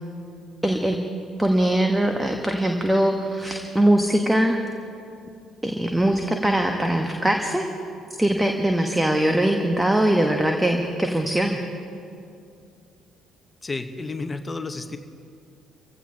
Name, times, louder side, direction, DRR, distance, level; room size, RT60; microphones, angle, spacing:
voice 1, 0.6-1.0 1.4-4.6 5.6-7.6 8.2-11.6, right 1 dB, 10° right, 3 dB, 1.2 m, -21 dB
voice 2, 13.6-15.0, left 3 dB, 25° left, 8 dB, 1.1 m, -31 dB
28.5 x 15.5 x 2.9 m, 2.4 s
figure-of-eight pair, 45°, 0 cm